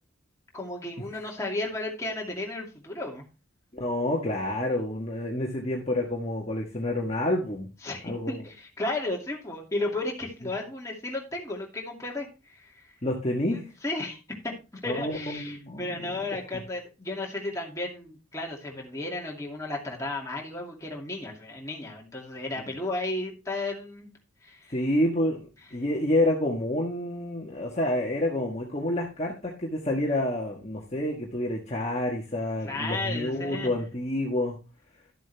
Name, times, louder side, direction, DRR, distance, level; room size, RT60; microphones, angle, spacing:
voice 1, 0.5-3.2 7.8-12.9 13.5-24.1 24.4-24.7 32.6-33.7, left 2 dB, 15° left, -1 dB, 2.4 m, -34 dB
voice 2, 3.7-7.7 8.0-8.5 13.0-13.7 14.8-16.2 24.7-34.6, left 1 dB, 30° left, -2 dB, 1.4 m, -28 dB
12.0 x 7.5 x 3.4 m, 0.30 s
head